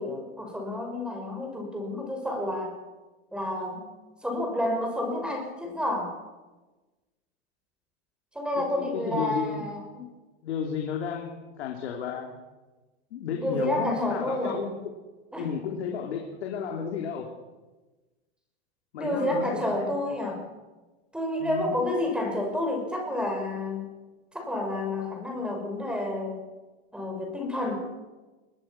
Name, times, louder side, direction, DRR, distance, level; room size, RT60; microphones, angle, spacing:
voice 1, 0.0-2.7 3.3-3.9 4.2-6.1 8.3-10.0 13.4-14.6 15.3-15.5 19.0-20.4 21.1-23.9 24.3-26.4 26.9-27.8, left 1 dB, 5° right, 2 dB, 5.9 m, -30 dB
voice 2, 8.6-9.7 10.4-12.3 13.1-14.7 15.4-17.3 18.9-19.9 21.4-21.7, left 7 dB, 85° left, 1 dB, 3.4 m, -33 dB
23.0 x 20.5 x 6.0 m, 1.2 s
supercardioid pair, 135°, 33 cm